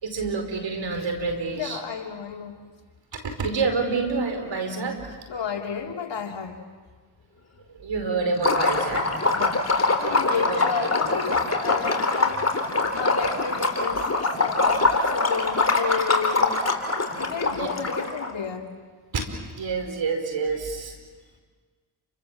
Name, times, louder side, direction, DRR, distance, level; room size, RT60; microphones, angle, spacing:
voice 1, 0.0-1.8 3.1-5.1 7.7-9.1 10.3-10.7 17.5-17.7 19.1-19.2 19.5-20.9, right 4 dB, 70° right, 5 dB, 4.9 m, -28 dB
voice 2, 1.5-2.6 5.3-6.6 9.1-9.7 10.0-12.4 13.0-16.7 17.2-18.7, left 6 dB, 65° left, 2 dB, 3.3 m, -32 dB
Liquid, 8.4-18.3, left 3 dB, 35° left, 3.9 m, -23 dB
29.5 x 25.0 x 7.5 m, 1.5 s
supercardioid pair, 45°, 47 cm